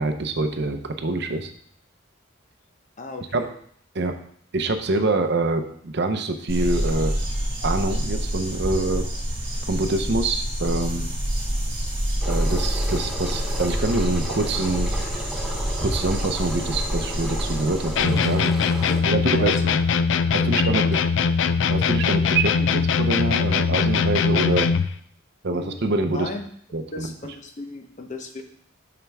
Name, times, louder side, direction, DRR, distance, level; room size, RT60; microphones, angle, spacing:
voice 1, 0.0-1.5 3.3-3.5 3.9-4.1 4.5-7.1 7.6-9.1 9.7-11.1 12.2-14.9 15.8-18.5 19.1-19.8 20.3-21.0 21.7-24.7 25.4-26.3 26.7-27.1, right 2 dB, 55° right, 7 dB, 0.7 m, -25 dB
voice 2, 3.0-3.5 12.5-12.6 18.8-19.7 20.1-20.9 25.5-26.5 26.9-28.4, left 2 dB, 35° left, 5 dB, 0.8 m, -36 dB
sound 1, 6.5-18.0, equal, 35° right, 3.0 m, -27 dB
Engine, 12.2-19.0, equal, ahead, 0.8 m, -35 dB
sound 2, 18.0-24.9, left 5 dB, 65° left, 0.4 m, -21 dB
7.4 x 5.9 x 3.5 m, 0.62 s
head